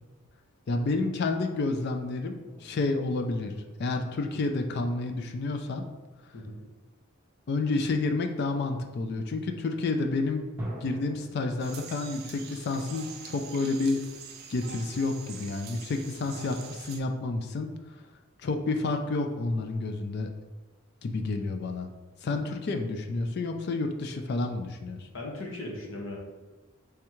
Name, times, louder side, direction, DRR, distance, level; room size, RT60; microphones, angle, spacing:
voice 1, 0.7-3.5 3.8-5.8 7.5-10.5 10.8-14.0 14.5-17.7 18.4-20.3 21.0-21.9 22.2-25.1, left 3 dB, 50° left, 5 dB, 0.3 m, -30 dB
sound 1, 10.6-14.9, equal, 10° right, 0.6 m, -46 dB
sound 2, 11.6-17.0, right 6 dB, 50° right, 0.4 m, -45 dB
voice 2, 25.1-26.2, left 1 dB, 70° left, -1 dB, 0.9 m, -38 dB
3.5 x 3.3 x 3.0 m, 1.2 s
head